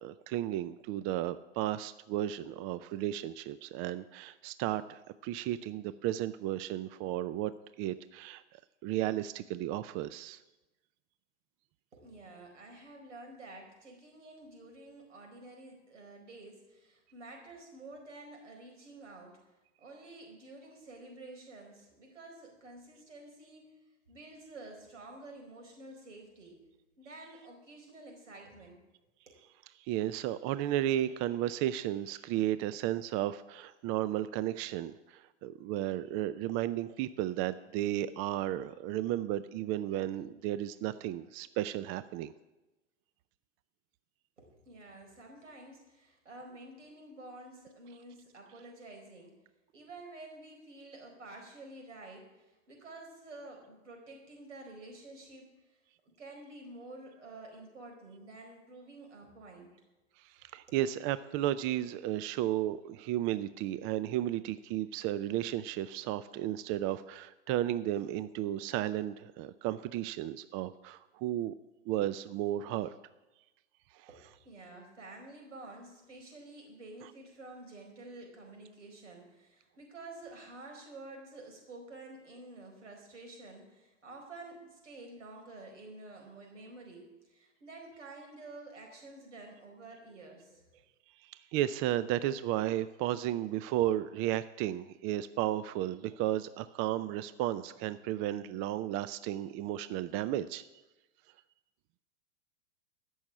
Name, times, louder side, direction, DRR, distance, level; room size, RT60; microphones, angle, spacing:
voice 1, 0.0-10.4 29.8-42.3 60.2-71.5 71.9-72.9 73.9-74.1 91.2-100.7, right 13 dB, 40° right, 14 dB, 0.5 m, -34 dB
voice 2, 11.9-26.6 27.0-28.8 29.3-29.4 44.4-49.3 49.7-55.8 56.2-59.7 60.7-60.8 74.1-90.8, right 2 dB, 90° right, 1 dB, 4.6 m, -50 dB
15.0 x 6.4 x 8.5 m, 1.0 s
hypercardioid pair, 110°, 35 cm